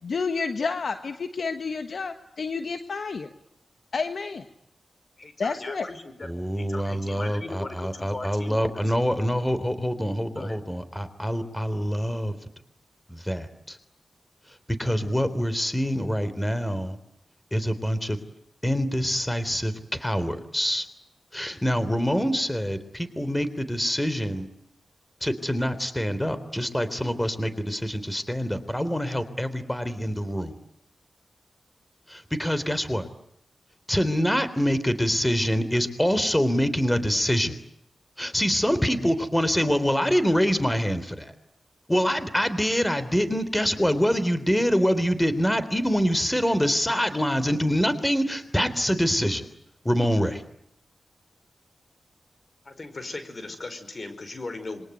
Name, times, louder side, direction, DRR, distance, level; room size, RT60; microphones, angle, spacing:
voice 1, 0.0-3.3 3.9-4.4 5.4-5.9, left 4 dB, 70° left, 8 dB, 1.4 m, -30 dB
voice 2, 5.2-6.3 6.6-8.8 10.4-10.6 52.7-54.8, left 2 dB, 50° left, 10 dB, 5.3 m, -38 dB
voice 3, 6.2-12.3 13.1-13.8 14.8-17.0 17.5-18.2 18.6-20.9 21.3-24.5 25.2-30.6 32.1-33.1 33.9-37.6 38.2-41.3 41.9-49.5 49.9-50.4, equal, 10° left, 13 dB, 3.6 m, -25 dB
26.5 x 23.5 x 9.4 m, 0.75 s
cardioid pair, 45°, 0 cm